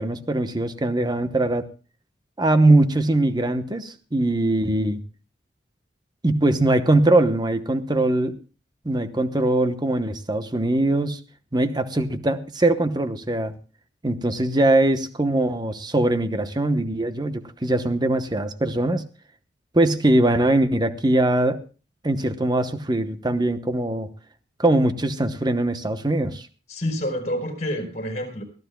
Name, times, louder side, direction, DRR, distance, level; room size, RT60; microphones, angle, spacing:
voice 1, 0.0-1.7 2.4-5.0 6.2-8.4 8.8-11.2 11.5-13.5 14.0-19.0 19.7-21.6 22.0-24.1 24.6-26.5, right 1 dB, 20° right, 10 dB, 0.9 m, -21 dB
voice 2, 26.7-28.4, equal, 40° left, 4 dB, 4.2 m, -28 dB
22.5 x 15.0 x 2.2 m, 0.35 s
head